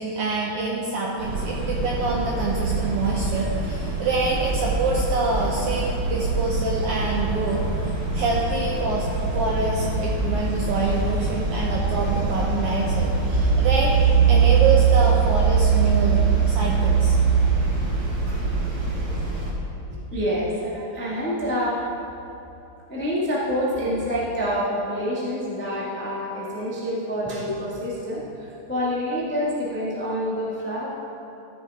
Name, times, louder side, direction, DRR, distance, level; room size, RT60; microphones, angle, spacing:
voice 1, 0.0-7.6 8.1-9.1 9.3-17.2, right 3 dB, 75° right, -2 dB, 1.4 m, -26 dB
sound 1, 1.2-19.5, right 5 dB, 50° right, 1.7 m, -23 dB
voice 2, 19.9-21.8 22.9-30.9, equal, 10° left, -7 dB, 0.5 m, -27 dB
14.0 x 6.9 x 3.5 m, 2.8 s
omnidirectional pair, 3.4 m